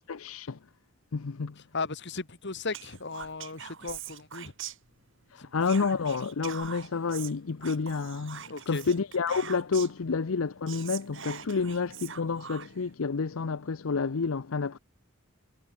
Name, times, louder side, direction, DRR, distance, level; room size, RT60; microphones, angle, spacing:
voice 1, 0.1-0.6 1.1-1.6 5.3-14.8, left 4 dB, 75° left, 0.7 m, -29 dB
voice 2, 1.7-4.5 5.4-5.5 8.5-8.8, left 4 dB, 55° left, 2.3 m, -36 dB
Whispering, 2.7-5.2 5.6-10.0 10.4-10.5 10.7-12.9, right 9 dB, 65° right, 3.1 m, -43 dB
head